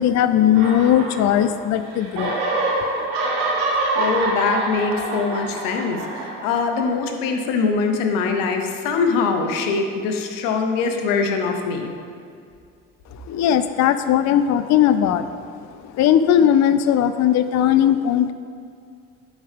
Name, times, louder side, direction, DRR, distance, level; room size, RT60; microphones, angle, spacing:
voice 1, 0.0-2.4 2.8-2.9 13.1-15.5 15.9-18.3, left 10 dB, 55° left, 11 dB, 0.5 m, -18 dB
sound 1, 0.5-1.7 1.9-6.9, right 2 dB, 85° right, 1.7 m, -25 dB
voice 2, 3.9-11.9, left 4 dB, 80° left, 4 dB, 1.0 m, -23 dB
11.5 x 5.0 x 3.6 m, 2.3 s
supercardioid pair, 70°, 33 cm